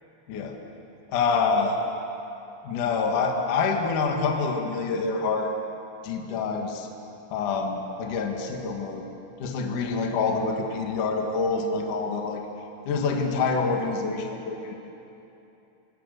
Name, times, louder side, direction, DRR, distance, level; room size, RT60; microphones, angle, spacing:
voice 1, 1.1-1.8 2.6-5.5 6.0-6.9 7.3-9.1 9.4-12.4 12.9-14.7, left 4 dB, 55° left, 2 dB, 2.7 m, -26 dB
26.0 x 25.0 x 6.7 m, 2.9 s
omnidirectional pair, 5.4 m